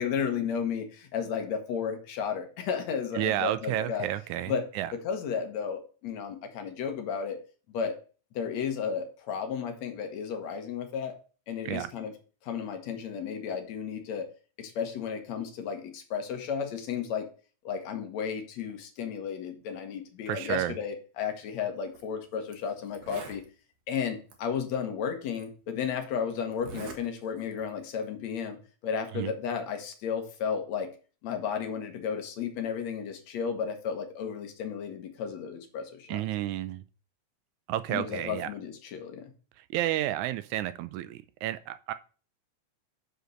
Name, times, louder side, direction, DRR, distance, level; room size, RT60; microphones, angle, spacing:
voice 1, 0.0-4.1 4.5-4.6 5.0-7.4 7.7-8.0 8.3-11.2 11.5-12.1 12.4-14.3 14.6-17.3 17.6-23.4 23.9-30.9 31.2-36.2 37.9-39.3, left 7 dB, 70° left, 2.5 m, -33 dB
voice 2, 3.2-4.9 11.7-11.9 20.3-20.8 29.1-29.3 36.1-36.8 37.7-38.5 39.7-41.9, right 13 dB, 85° right, 2.0 m, -31 dB
Zipper (clothing), 21.9-22.0 22.5-22.6 22.9-23.4 24.3-24.4 25.3-25.4 26.5-27.0 27.4-27.7, right 4 dB, 50° right, 1.2 m, -43 dB
6.3 x 5.1 x 6.4 m
omnidirectional pair, 3.3 m